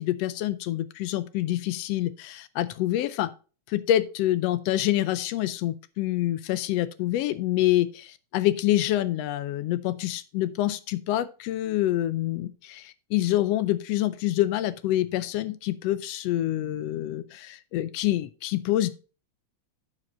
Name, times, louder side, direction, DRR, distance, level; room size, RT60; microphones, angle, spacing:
voice 1, 0.0-3.3 3.7-18.9, left 14 dB, 80° left, 14 dB, 1.4 m, -26 dB
12.0 x 4.9 x 4.3 m, 0.35 s
omnidirectional pair, 3.4 m